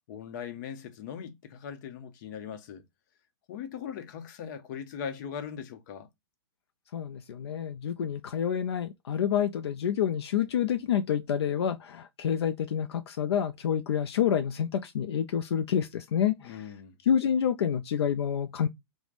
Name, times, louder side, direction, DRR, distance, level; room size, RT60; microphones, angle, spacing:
voice 1, 0.1-2.8 3.5-6.1 16.4-17.0, left 7 dB, 50° left, 0.7 m, -40 dB
voice 2, 6.9-16.6 17.0-18.7, left 8 dB, 80° left, 0.4 m, -28 dB
3.2 x 2.1 x 2.4 m
hypercardioid pair, 140°, 14 cm